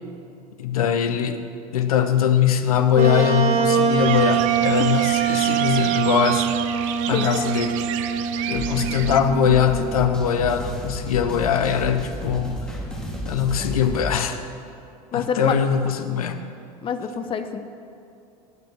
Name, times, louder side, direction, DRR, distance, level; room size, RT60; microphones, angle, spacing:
voice 1, 0.6-1.4 1.7-6.5 7.1-7.8 8.5-12.6 13.2-14.4 15.1-16.4, left 8 dB, 65° left, 9 dB, 1.1 m, -21 dB
Wind instrument woodwind instrument, 2.9-10.4, right 7 dB, 35° right, 1.6 m, -24 dB
sound 1, 4.0-9.2, right 11 dB, 55° right, 0.7 m, -31 dB
sound 2, 8.5-14.1, equal, 5° left, 3.5 m, -32 dB
voice 2, 15.1-15.5 16.8-17.6, left 7 dB, 25° left, 8 dB, 1.0 m, -26 dB
17.5 x 9.1 x 6.2 m, 2.5 s
figure-of-eight pair, 80°, 20 cm